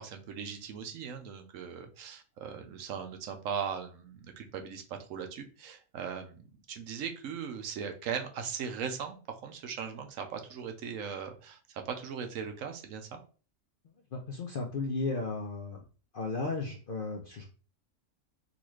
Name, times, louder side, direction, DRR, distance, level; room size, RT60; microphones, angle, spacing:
voice 1, 0.0-13.2, right 7 dB, 80° right, 5 dB, 1.0 m, -39 dB
voice 2, 14.1-15.8 16.1-17.5, left 3 dB, 55° left, 1 dB, 0.6 m, -34 dB
3.8 x 2.5 x 3.0 m, 0.38 s
omnidirectional pair, 1.4 m